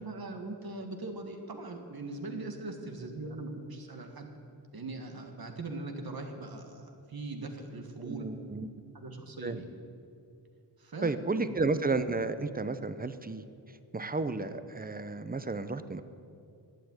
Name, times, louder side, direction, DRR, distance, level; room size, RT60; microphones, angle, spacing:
voice 1, 0.0-4.4 4.7-8.3 8.9-9.7 10.8-11.5, right 2 dB, 60° right, 4 dB, 1.9 m, -40 dB
voice 2, 8.0-8.7 9.4-9.6 11.0-13.4 13.9-16.0, right 3 dB, 20° right, 12 dB, 0.8 m, -32 dB
11.5 x 8.9 x 9.4 m, 2.5 s
wide cardioid pair, 70°, 41 cm